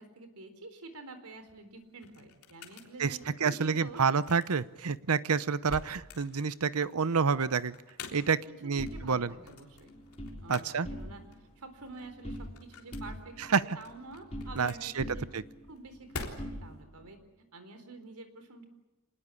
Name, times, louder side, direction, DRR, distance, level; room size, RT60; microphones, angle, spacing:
voice 1, 0.0-4.0 8.4-9.9 10.4-11.2 11.6-15.3 15.7-18.7, right 2 dB, 90° right, 8 dB, 3.9 m, -48 dB
sound 1, 1.3-16.8, left 3 dB, 70° left, 3.7 m, -49 dB
voice 2, 3.0-7.7 8.1-9.3 10.5-10.9 13.5-13.6 14.6-15.0 15.3-15.4, right 5 dB, 70° right, 16 dB, 0.8 m, -28 dB
sound 2, 8.8-10.4 10.7-11.4 11.7-12.6 12.9-14.7 15.0-17.1, equal, 30° left, 6.2 m, -43 dB
26.5 x 20.0 x 8.4 m, 1.1 s
head